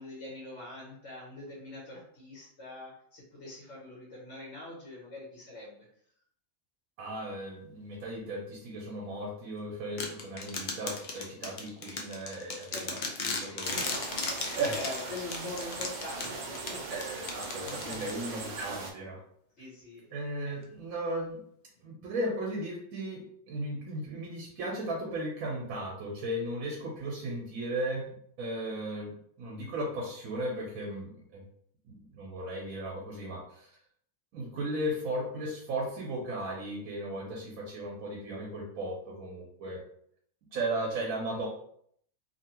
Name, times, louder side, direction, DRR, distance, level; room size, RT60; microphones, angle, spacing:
voice 1, 0.0-5.9 12.7-17.0 17.6-18.1 19.6-20.1 20.4-20.5, left 2 dB, 60° left, -4 dB, 1.0 m, -44 dB
voice 2, 7.0-14.0 14.6-14.8 16.9-19.2 20.1-21.4 21.8-31.4 31.8-33.7 34.3-39.8 40.5-41.5, right 1 dB, 90° right, -1 dB, 1.1 m, -36 dB
sound 1, 10.0-18.4, left 4 dB, 75° left, 0.4 m, -37 dB
sound 2, 13.6-18.9, right 3 dB, 60° right, 0.4 m, -40 dB
2.6 x 2.6 x 2.8 m, 0.65 s
omnidirectional pair, 1.4 m